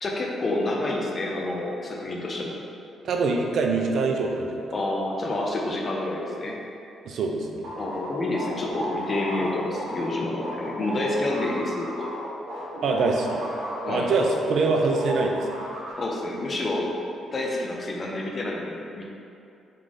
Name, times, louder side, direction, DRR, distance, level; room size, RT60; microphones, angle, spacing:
voice 1, 0.0-2.6 4.7-6.6 7.8-12.1 13.8-14.1 16.0-16.9 17.3-19.1, left 2 dB, 40° left, -2 dB, 0.6 m, -28 dB
voice 2, 3.0-4.6 7.1-7.7 12.8-13.4 13.9-15.6, right 3 dB, 65° right, 2 dB, 0.5 m, -24 dB
sound 1, 7.6-14.7 14.9-15.9, equal, 90° right, 1.0 m, -34 dB
3.7 x 3.3 x 3.7 m, 2.7 s
cardioid pair, 90°, 0 cm